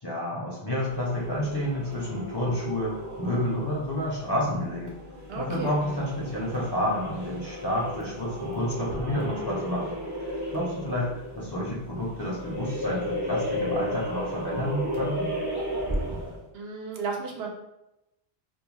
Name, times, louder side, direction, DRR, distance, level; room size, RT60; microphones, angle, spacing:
voice 1, 0.0-5.0 5.3-9.9 10.2-11.1 11.4-15.4, left 1 dB, 35° left, -5 dB, 0.5 m, -30 dB
sound 1, 0.8-16.5, equal, 25° right, 0.4 m, -34 dB
voice 2, 5.3-5.8 16.5-17.5, right 5 dB, 85° right, 1 dB, 0.8 m, -33 dB
2.3 x 2.2 x 3.0 m, 0.89 s
omnidirectional pair, 1.0 m